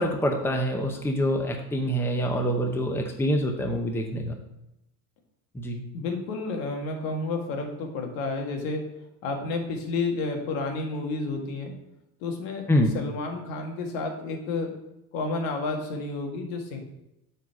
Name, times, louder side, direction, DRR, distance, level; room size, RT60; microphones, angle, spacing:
voice 1, 0.0-4.4 5.5-5.8 12.7-12.9, equal, 5° left, 3 dB, 0.7 m, -26 dB
voice 2, 5.9-8.8 9.2-11.7 12.2-12.7 12.9-14.7 15.1-16.8, left 3 dB, 80° left, 3 dB, 1.8 m, -30 dB
7.4 x 4.1 x 5.8 m, 0.89 s
cardioid pair, 145°, 39 cm